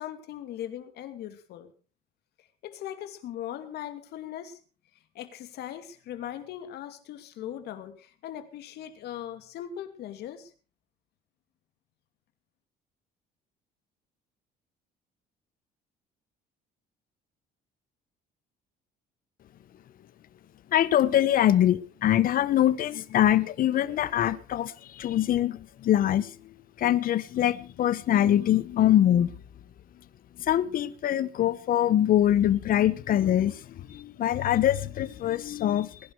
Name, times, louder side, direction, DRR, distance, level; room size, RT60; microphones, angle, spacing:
voice 1, 0.0-1.7 2.6-4.6 5.1-10.5, left 11 dB, 75° left, 2.6 m, -39 dB
voice 2, 20.7-26.4 26.8-29.3 30.4-36.0, left 11 dB, 55° left, 1.1 m, -24 dB
20.5 x 11.0 x 4.8 m
cardioid pair, 110°, 17 cm